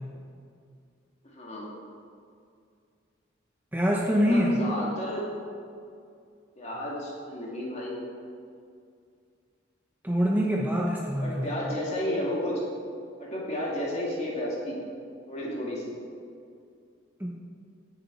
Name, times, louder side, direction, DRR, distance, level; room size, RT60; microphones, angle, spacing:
voice 1, 1.3-1.7 4.3-5.3 6.6-8.0 11.2-12.6 13.2-14.8 15.3-16.0, left 1 dB, 35° left, -4 dB, 2.5 m, -32 dB
voice 2, 3.7-4.5 10.0-11.4 17.2-17.3, equal, 10° right, -2 dB, 0.8 m, -24 dB
16.0 x 7.1 x 4.2 m, 2.3 s
head